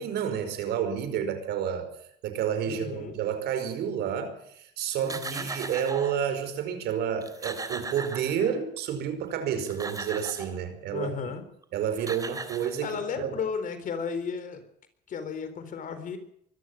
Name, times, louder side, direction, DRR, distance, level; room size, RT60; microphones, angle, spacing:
voice 1, 0.0-1.9 2.2-11.1 11.7-12.9 13.2-13.3, right 8 dB, 80° right, 10 dB, 5.2 m, -30 dB
voice 2, 2.7-3.1 5.0-5.5 10.9-11.4 12.8-14.6 15.1-16.2, left 6 dB, 50° left, 10 dB, 4.0 m, -34 dB
sound 1, 4.9-6.2 6.9-7.0 7.2-8.8 9.5-10.6 11.6-11.7 12.0-13.2, right 3 dB, 20° right, 3.3 m, -38 dB
24.0 x 14.5 x 7.6 m, 0.71 s
cardioid pair, 110°, 17 cm